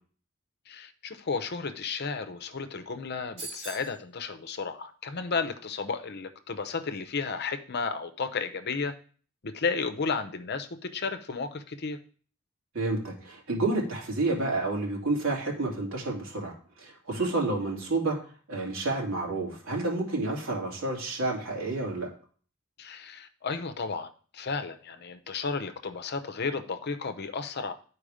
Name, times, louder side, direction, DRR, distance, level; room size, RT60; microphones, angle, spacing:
voice 1, 0.7-8.9 9.4-12.0 17.1-17.3 22.8-27.7, left 4 dB, 50° left, 9 dB, 0.7 m, -33 dB
sound 1, 3.4-4.0, right 2 dB, 30° right, 4.5 m, -40 dB
voice 2, 12.7-18.2 18.5-22.1, right 2 dB, 75° right, -3 dB, 2.9 m, -30 dB
10.5 x 4.6 x 5.0 m, 0.43 s
head